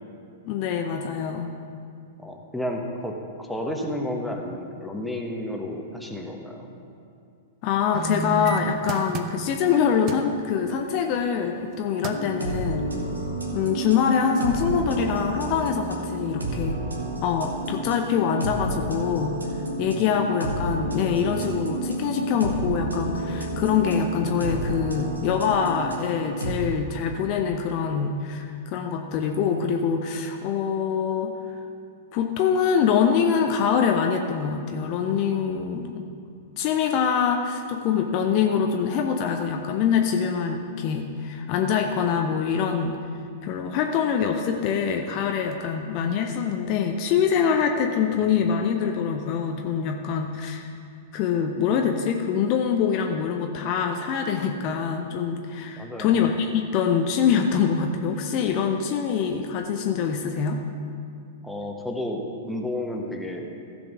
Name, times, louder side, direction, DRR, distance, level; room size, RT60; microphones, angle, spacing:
voice 1, 0.4-1.5 7.6-12.9 13.5-16.8 17.2-19.4 19.8-31.3 32.1-36.1 36.6-43.0 43.4-50.7 51.1-60.6, left 7 dB, 40° left, 4 dB, 0.7 m, -24 dB
voice 2, 2.2-3.1 3.4-6.7 20.0-20.1 55.8-56.2 61.4-63.5, left 1 dB, ahead, 0 dB, 1.2 m, -31 dB
sound 1, 7.9-9.7 10.1-10.3 11.6-11.7 12.0-12.4 12.9-13.0, right 5 dB, 35° right, 0.7 m, -31 dB
sound 2, 12.0-26.6, right 1 dB, 80° right, 1.6 m, -30 dB
15.0 x 5.3 x 6.2 m, 2.4 s
figure-of-eight pair, 100°, 0 cm